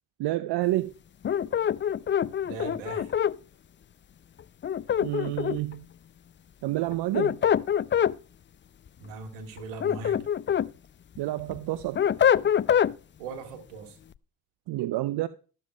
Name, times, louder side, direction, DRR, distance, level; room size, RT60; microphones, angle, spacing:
voice 1, 0.2-0.9 5.0-5.8 6.6-7.4 11.2-12.0 14.7-15.3, right 16 dB, 60° right, 0.8 m, -29 dB
sound 1, 1.2-3.4 4.6-5.7 6.9-8.2 9.6-10.7 11.2-12.9, left 9 dB, 25° left, 0.5 m, -24 dB
voice 2, 2.4-3.1 9.0-10.2 13.2-13.9, right 4 dB, 75° right, 2.7 m, -39 dB
13.5 x 7.4 x 5.2 m
hypercardioid pair, 45°, 46 cm